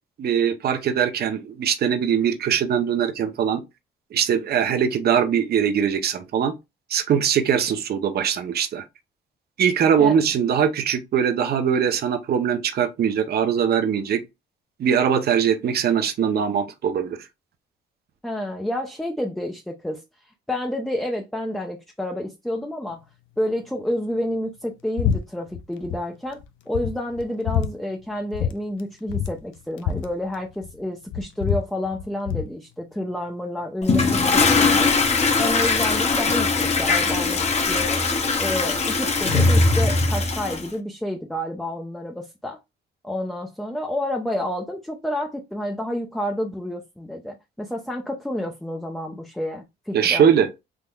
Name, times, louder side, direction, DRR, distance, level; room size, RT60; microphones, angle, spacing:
voice 1, 0.2-3.6 4.1-6.5 6.9-8.8 9.6-14.2 14.8-17.2 49.9-50.5, right 8 dB, 55° right, 0.6 m, -21 dB
voice 2, 18.2-23.0 23.4-26.4 26.7-34.9 35.4-38.0 38.4-42.6 43.0-50.3, left 1 dB, ahead, 0.5 m, -29 dB
sound 1, 25.0-25.2 25.5-26.0 26.4-26.5 26.7-27.7 28.3-28.5 28.8-28.9 29.1-30.8 31.1-32.5, left 8 dB, 75° left, 0.5 m, -26 dB
Toilet flush, 33.8-40.7, left 3 dB, 35° left, 0.7 m, -20 dB
3.5 x 2.9 x 2.2 m
cardioid pair, 90°, 20 cm